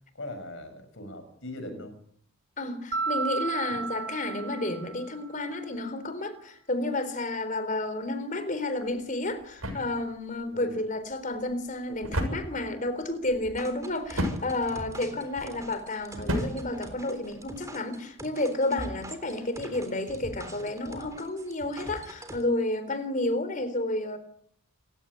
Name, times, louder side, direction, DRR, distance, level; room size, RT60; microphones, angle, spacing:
voice 1, 0.1-2.0 3.7-3.8 10.5-10.7, left 1 dB, 60° left, 6.5 m, -40 dB
voice 2, 2.6-24.2, left 2 dB, 35° left, 3.7 m, -31 dB
Mallet percussion, 2.9-5.3, right 4 dB, 40° right, 1.9 m, -33 dB
sound 1, 8.7-17.6, equal, 75° right, 7.1 m, -36 dB
sound 2, 13.4-22.4, right 1 dB, 15° right, 3.5 m, -43 dB
27.5 x 15.5 x 9.9 m
head